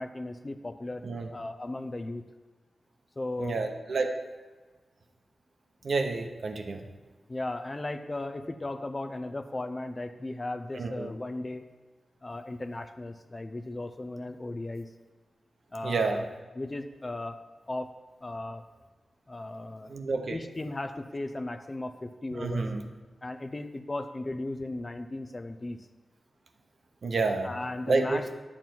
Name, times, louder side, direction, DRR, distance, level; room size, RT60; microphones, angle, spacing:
voice 1, 0.0-2.2 3.2-3.6 7.3-11.6 12.2-14.9 15.7-16.3 16.6-17.4 17.7-17.9 18.2-18.6 19.3-19.9 20.3-22.7 23.2-25.8 27.4-28.3, left 2 dB, 30° left, 7 dB, 0.5 m, -36 dB
voice 2, 3.4-4.1 5.8-6.8 10.7-11.1 15.8-16.2 19.9-20.4 22.4-22.8 27.0-27.5 27.9-28.2, right 3 dB, 65° right, 5 dB, 1.0 m, -29 dB
10.5 x 7.3 x 4.5 m, 1.3 s
wide cardioid pair, 100°, 0 cm